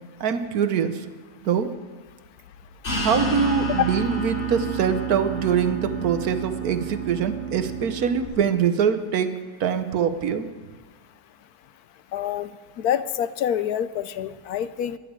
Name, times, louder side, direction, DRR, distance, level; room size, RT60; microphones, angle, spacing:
voice 1, 0.2-1.0 1.4-1.7 2.9-9.3 9.6-10.5, right 7 dB, 70° right, 10 dB, 1.4 m, -24 dB
sound 1, 2.8-8.2, right 3 dB, 45° left, 4.5 m, -29 dB
voice 2, 12.1-12.5 12.8-15.0, left 9 dB, 75° left, 13 dB, 1.1 m, -27 dB
12.0 x 11.0 x 8.7 m, 1.4 s
omnidirectional pair, 1.7 m